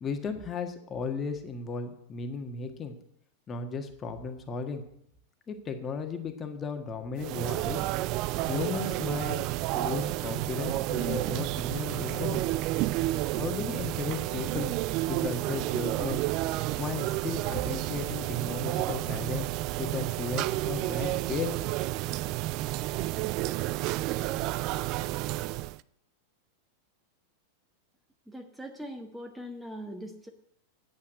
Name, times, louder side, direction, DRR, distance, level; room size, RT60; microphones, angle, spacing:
voice 1, 0.0-2.9 3.5-4.8 5.5-7.8 8.4-9.4 9.7-12.4 13.3-14.7 15.1-16.2 16.8-19.5 19.8-21.5, left 5 dB, 25° left, 6 dB, 1.5 m, -35 dB
sound 1, 7.2-25.8, right 17 dB, 40° right, 0.4 m, -31 dB
voice 2, 28.3-30.3, equal, 5° right, 4 dB, 1.1 m, -41 dB
9.3 x 8.7 x 7.9 m, 0.72 s
figure-of-eight pair, 90°, 0 cm